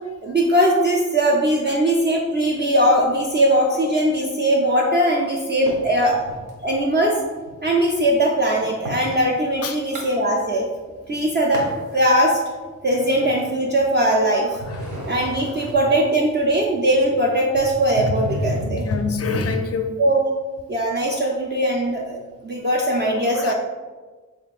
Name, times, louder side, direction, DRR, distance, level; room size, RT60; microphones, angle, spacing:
voice 1, 0.2-6.2 6.6-7.1 7.6-10.7 11.1-11.6 11.9-12.4 12.8-14.6 15.1-18.8 20.0-20.2 20.7-23.5, right 1 dB, 35° right, -3 dB, 0.5 m, -20 dB
sound 1, 5.7-6.6 7.1-9.1 9.6-10.8 11.1-11.9 12.4-14.1 14.5-19.5, equal, 75° right, 0.9 m, -32 dB
voice 2, 14.7-15.0 18.6-19.9 23.3-23.5, left 6 dB, 50° left, 6 dB, 0.4 m, -27 dB
3.6 x 3.6 x 2.4 m, 1.3 s
wide cardioid pair, 100°, 31 cm